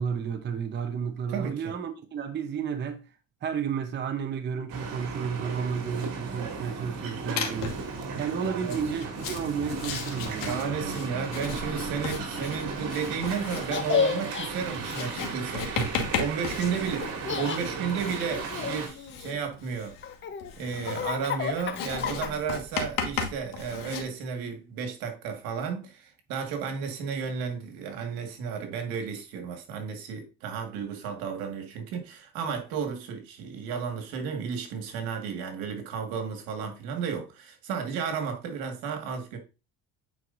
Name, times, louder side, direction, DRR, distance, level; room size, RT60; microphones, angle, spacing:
voice 1, 0.0-3.0 3.4-7.8 8.2-10.9 15.5-15.9, right 7 dB, 30° right, 0.7 m, -32 dB
voice 2, 1.3-1.7 8.6-8.8 10.4-15.8 16.2-19.9 20.6-39.4, right 6 dB, 85° right, 1.8 m, -33 dB
sound 1, 4.7-18.9, right 4 dB, 65° right, 2.5 m, -36 dB
Writing, 7.4-7.9 8.6-24.0, left 6 dB, 70° left, 1.7 m, -36 dB
Laughter, 13.7-14.5 17.0-17.6 18.2-19.5 20.0-22.6, left 7 dB, 35° left, 0.8 m, -31 dB
9.1 x 4.7 x 2.6 m
cardioid pair, 125°, 35 cm